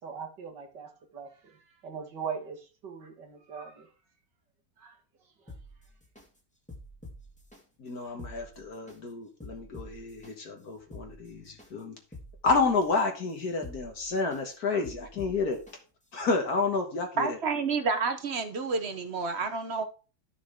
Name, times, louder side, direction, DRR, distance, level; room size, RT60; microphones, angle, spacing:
voice 1, 0.0-3.9 4.8-5.0 5.4-5.6, right 6 dB, 70° right, 2.3 m, -41 dB
sound 1, 5.5-6.2 6.7-7.6 8.1-9.0 9.4-10.3 10.8-11.7 12.1-13.0 13.5-14.4 14.8-15.7 16.2-16.3, left 1 dB, 5° left, 1.9 m, -47 dB
voice 2, 7.8-12.0 12.4-15.6 16.1-17.4, left 4 dB, 60° left, 1.8 m, -30 dB
voice 3, 17.2-19.8, right 4 dB, 45° right, 1.1 m, -29 dB
12.0 x 6.4 x 3.7 m
omnidirectional pair, 2.0 m